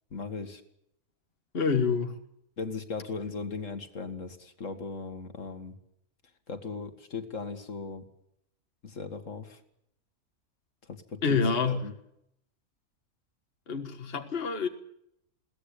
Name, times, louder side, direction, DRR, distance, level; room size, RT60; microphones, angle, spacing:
voice 1, 0.1-0.6 2.6-5.7 6.5-8.0 8.8-9.6 10.9-11.9, left 4 dB, 60° left, 2.3 m, -38 dB
voice 2, 1.5-2.2 11.2-11.8 13.7-14.7, left 5 dB, 40° left, 1.8 m, -27 dB
22.0 x 18.0 x 8.6 m
omnidirectional pair, 1.5 m